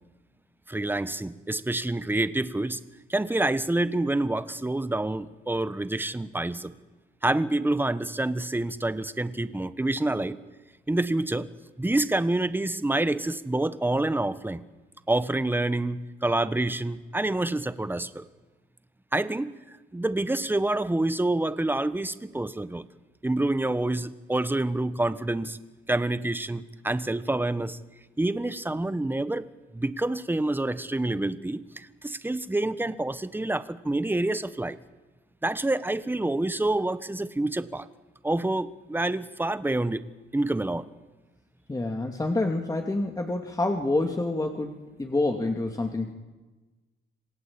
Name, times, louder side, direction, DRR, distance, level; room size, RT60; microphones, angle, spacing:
voice 1, 0.7-2.8 3.1-6.7 7.2-10.4 10.9-11.5 11.8-14.6 15.1-18.3 19.1-19.5 19.9-22.9 23.2-25.6 25.9-27.8 28.2-29.5 29.7-34.8 35.4-37.9 38.2-40.0 40.3-40.9, right 2 dB, 10° right, 13 dB, 1.3 m, -27 dB
voice 2, 41.7-46.1, left 2 dB, 20° left, 3 dB, 2.6 m, -27 dB
27.5 x 19.0 x 8.8 m, 1.2 s
cardioid pair, 90°, 20 cm